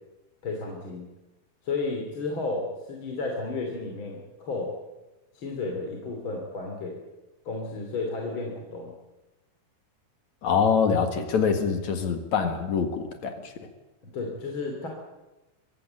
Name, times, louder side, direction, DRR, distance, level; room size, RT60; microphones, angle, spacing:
voice 1, 0.4-1.1 1.6-4.7 5.3-7.0 7.4-8.9 14.0-14.9, left 3 dB, 35° left, 1 dB, 3.0 m, -32 dB
voice 2, 10.4-13.7, left 6 dB, 55° left, 7 dB, 2.7 m, -25 dB
24.0 x 15.0 x 9.0 m, 1.1 s
omnidirectional pair, 4.7 m